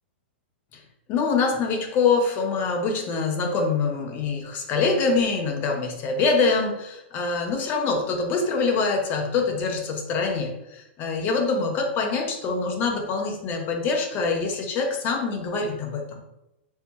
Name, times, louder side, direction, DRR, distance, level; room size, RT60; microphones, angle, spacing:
voice 1, 1.1-16.2, left 4 dB, 30° left, 3 dB, 0.6 m, -25 dB
3.2 x 2.6 x 2.9 m, 0.89 s
hypercardioid pair, 135°, 6 cm